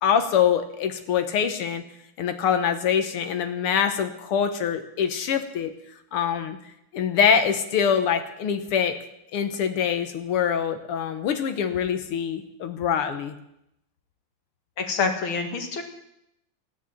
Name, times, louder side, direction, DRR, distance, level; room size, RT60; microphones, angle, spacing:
voice 1, 0.0-1.8 2.2-5.7 6.1-6.6 6.9-9.0 9.3-13.3, left 7 dB, 85° left, 8 dB, 2.1 m, -24 dB
voice 2, 14.8-15.8, left 4 dB, 70° left, 5 dB, 2.5 m, -26 dB
14.0 x 10.0 x 7.4 m, 0.80 s
omnidirectional pair, 2.4 m